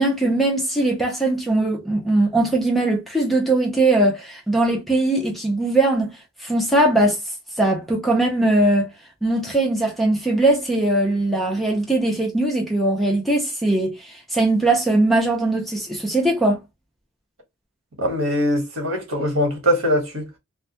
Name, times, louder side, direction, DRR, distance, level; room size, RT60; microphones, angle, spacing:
voice 1, 0.0-6.1 6.4-7.2 7.6-8.9 9.2-16.6, right 2 dB, ahead, 0.5 m, -20 dB
voice 2, 18.0-20.4, equal, 90° right, 1.0 m, -22 dB
2.2 x 2.1 x 2.7 m
head